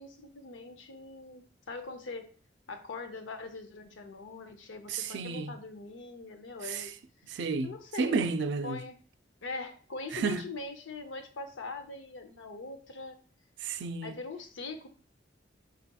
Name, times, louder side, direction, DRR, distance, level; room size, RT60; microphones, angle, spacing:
voice 1, 0.0-2.3 2.7-6.9 7.6-8.3 8.6-8.9 9.4-13.2 14.0-14.9, left 3 dB, 80° left, 0.6 m, -42 dB
voice 2, 4.9-5.6 6.6-6.9 7.3-8.8 10.1-10.4 13.6-14.2, right 4 dB, 65° right, 0.4 m, -32 dB
4.8 x 4.2 x 2.3 m
head